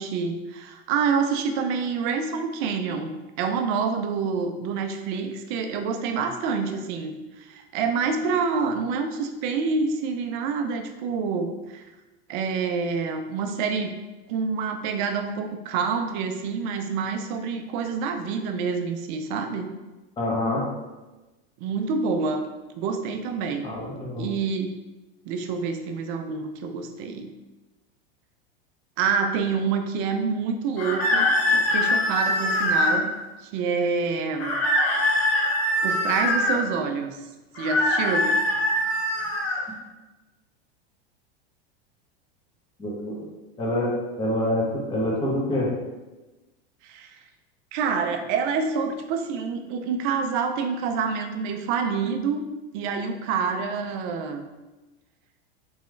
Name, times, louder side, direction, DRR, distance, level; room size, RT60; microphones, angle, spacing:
voice 1, 0.0-11.8 12.3-14.0 14.3-19.7 21.6-22.4 22.8-23.7 24.2-24.8 25.3-27.3 29.0-33.1 33.4-34.6 35.8-37.2 37.6-38.3 46.8-47.2 47.7-52.5 52.7-54.4, right 5 dB, 50° right, 6 dB, 0.5 m, -27 dB
voice 2, 20.2-20.6 23.6-24.3 42.8-43.2 43.6-45.7, left 1 dB, 15° left, -5 dB, 0.9 m, -26 dB
sound 1, 30.8-33.0 34.4-36.6 37.5-39.6, left 1 dB, 70° left, 1.2 m, -23 dB
3.6 x 3.0 x 3.2 m, 1.1 s
supercardioid pair, 125°, 31 cm